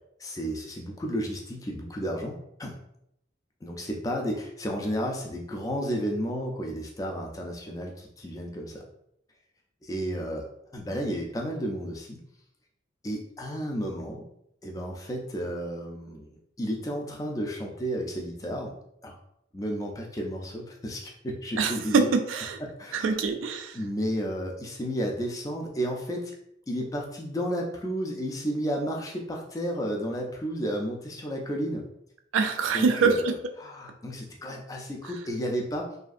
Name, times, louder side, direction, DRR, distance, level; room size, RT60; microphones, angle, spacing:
voice 1, 0.2-2.8 3.6-8.8 9.8-12.2 13.0-14.2 14.6-18.7 19.0-19.2 19.5-22.1 22.6-23.0 23.7-26.3 26.7-31.8 32.7-35.9, equal, 20° left, 0 dB, 0.3 m, -32 dB
voice 2, 21.6-22.6 22.9-23.8 32.3-33.3, right 5 dB, 90° right, 7 dB, 0.3 m, -24 dB
2.7 x 2.4 x 2.4 m, 0.75 s
head